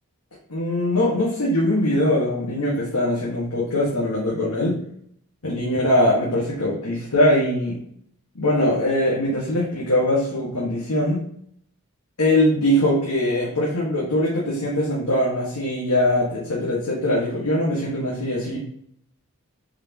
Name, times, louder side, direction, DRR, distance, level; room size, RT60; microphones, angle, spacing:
voice 1, 0.5-4.8 5.4-7.8 8.3-11.2 12.2-18.6, left 1 dB, 85° left, -6 dB, 1.7 m, -22 dB
7.2 x 4.9 x 3.0 m, 0.69 s
head